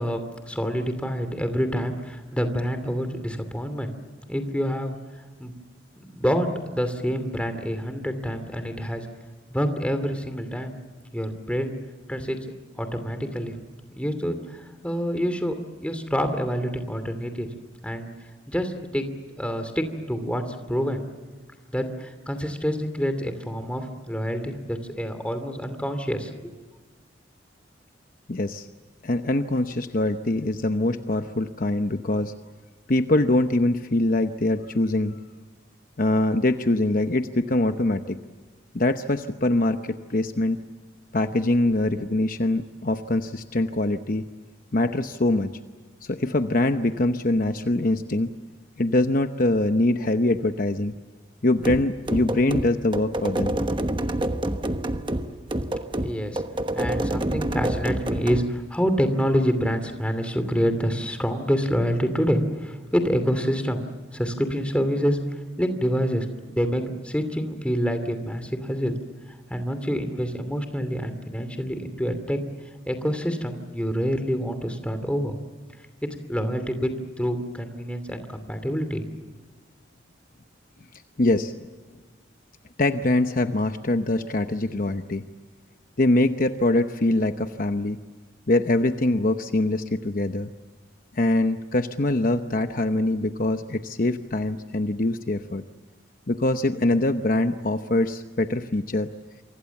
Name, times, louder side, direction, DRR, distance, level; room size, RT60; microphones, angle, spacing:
voice 1, 0.0-3.9 4.3-5.0 5.4-5.5 6.0-9.1 9.5-10.7 11.1-11.7 12.1-12.4 12.8-13.6 13.9-17.5 17.8-18.1 18.5-19.1 19.4-21.0 21.7-26.5 56.0-56.4 56.7-63.8 64.1-69.0 69.5-72.4 72.9-75.3 76.3-79.0, equal, 5° left, 8 dB, 2.7 m, -27 dB
voice 2, 28.3-28.7 29.0-32.3 32.9-35.2 36.0-38.2 38.7-40.6 41.1-44.3 44.7-45.5 46.0-48.3 48.8-50.9 51.4-53.6 81.2-81.5 82.8-85.2 86.0-88.0 88.5-90.5 91.1-95.6 96.3-99.1, left 2 dB, 45° left, 8 dB, 0.9 m, -23 dB
sound 1, 51.6-58.5, right 1 dB, 25° right, 1.1 m, -27 dB
28.0 x 25.0 x 7.2 m, 1.4 s
head